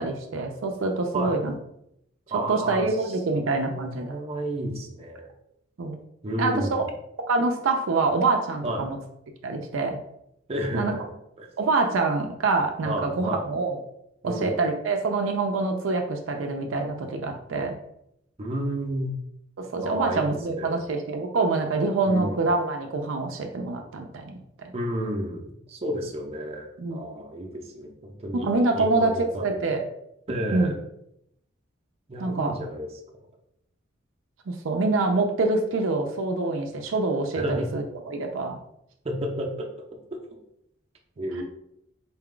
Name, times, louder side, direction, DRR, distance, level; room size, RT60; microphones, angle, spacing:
voice 1, 0.0-1.5 2.5-4.2 5.8-6.0 6.4-6.8 7.3-9.0 9.4-10.0 10.7-10.9 11.6-13.8 14.2-17.8 19.6-24.7 26.8-27.0 28.3-29.8 30.5-30.7 32.2-32.5 34.5-38.6 41.3-41.4, right 3 dB, 75° right, 3 dB, 0.5 m, -26 dB
voice 2, 2.3-5.3 6.2-6.8 8.6-8.9 10.5-11.0 11.4-11.5 12.8-13.5 14.2-14.6 18.4-19.2 19.8-20.8 22.0-22.4 24.7-29.6 30.3-30.8 32.1-32.9 37.3-37.7 39.0-39.7 40.1-40.2 41.2-41.4, right 1 dB, 30° right, 0 dB, 0.6 m, -31 dB
4.0 x 2.3 x 3.7 m, 0.78 s
head